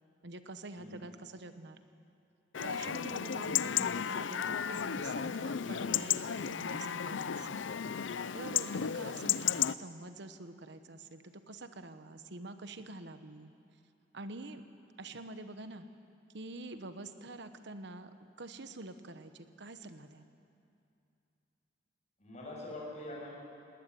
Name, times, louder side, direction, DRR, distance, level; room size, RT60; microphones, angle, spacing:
voice 1, 0.2-1.8 2.6-7.7 8.3-13.5 14.1-14.6 15.0-15.9 16.3-20.2, right 2 dB, 65° right, 9 dB, 1.2 m, -46 dB
Chatter / Livestock farm animals working animals / Chirp tweet, 2.5-9.7, left 8 dB, 75° left, 0.5 m, -34 dB
voice 2, 22.2-23.3, left 1 dB, 40° left, -3 dB, 7.1 m, -44 dB
19.5 x 18.0 x 9.8 m, 2.6 s
head